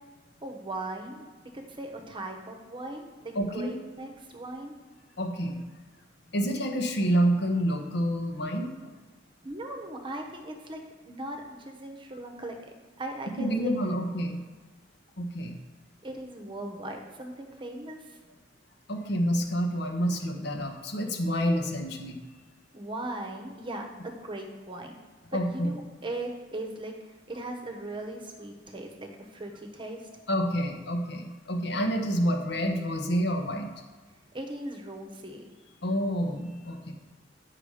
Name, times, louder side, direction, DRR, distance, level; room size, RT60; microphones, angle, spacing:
voice 1, 0.4-1.3 1.5-4.7 9.4-10.8 11.0-13.7 16.0-18.0 22.7-25.0 25.3-30.0 34.3-35.4, right 1 dB, 25° right, 2 dB, 1.1 m, -38 dB
voice 2, 3.3-3.7 5.2-5.6 6.3-8.7 13.4-14.4 15.2-15.6 18.9-22.2 25.3-25.7 30.3-33.7 35.8-36.9, equal, 60° left, 3 dB, 1.2 m, -28 dB
9.9 x 5.9 x 4.9 m, 1.3 s
head